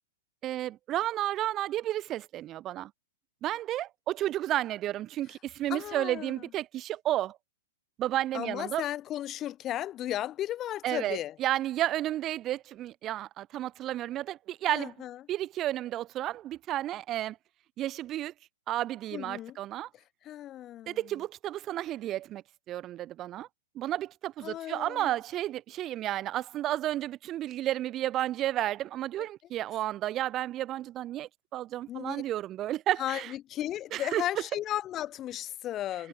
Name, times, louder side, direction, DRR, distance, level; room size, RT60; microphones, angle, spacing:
voice 1, 0.4-2.9 3.4-7.4 8.0-8.8 10.8-14.9 15.3-17.4 17.8-18.3 18.7-19.9 20.9-23.5 23.7-33.3 33.9-34.2, right 13 dB, 30° right, 1.2 m, -32 dB
voice 2, 5.7-6.4 8.3-11.4 14.7-15.2 19.1-19.6 19.9-21.0 24.4-25.2 31.9-32.2 33.0-36.1, left 12 dB, 30° left, 2.2 m, -35 dB
hypercardioid pair, 125°, 0 cm